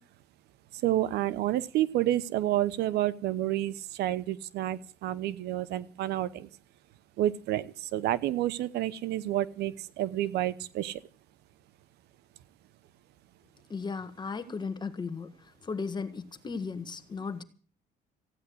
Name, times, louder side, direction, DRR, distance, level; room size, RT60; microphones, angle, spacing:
voice 1, 0.8-6.5 7.2-11.0, right 13 dB, 80° right, 17 dB, 1.0 m, -29 dB
voice 2, 13.7-15.3 15.6-17.4, left 5 dB, 25° left, 11 dB, 1.6 m, -36 dB
15.5 x 9.8 x 7.8 m, 0.42 s
cardioid pair, 110°, 17 cm